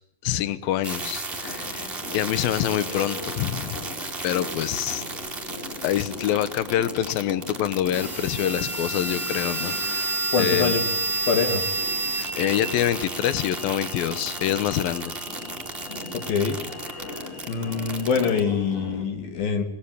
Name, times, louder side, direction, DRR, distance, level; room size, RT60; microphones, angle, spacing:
voice 1, 0.2-3.9 4.2-5.0 5.8-10.8 12.3-15.1, left 12 dB, 75° left, 15 dB, 2.2 m, -26 dB
sound 1, 0.8-18.4, right 3 dB, 15° right, 1.9 m, -31 dB
sound 2, 1.3-19.0, left 3 dB, 35° left, 4.7 m, -41 dB
voice 2, 10.3-10.9 11.3-11.6 16.1-16.6 17.5-19.6, left 5 dB, 55° left, 6 dB, 3.7 m, -24 dB
24.0 x 20.5 x 9.3 m, 0.83 s
omnidirectional pair, 5.5 m